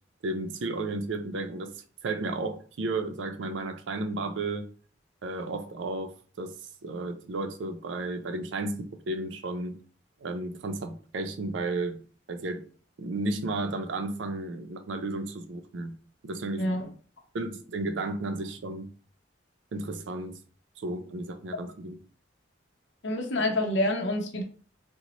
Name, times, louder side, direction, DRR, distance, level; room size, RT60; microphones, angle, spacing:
voice 1, 0.2-1.7 2.0-4.7 5.2-6.5 6.8-9.8 10.2-12.0 12.3-12.6 13.0-16.0 16.2-16.7 17.3-18.9 19.7-20.4 20.8-22.0, right 2 dB, 85° right, 0.5 m, -33 dB
voice 2, 23.0-24.4, left 1 dB, 70° left, 0.6 m, -27 dB
3.8 x 2.1 x 2.9 m
head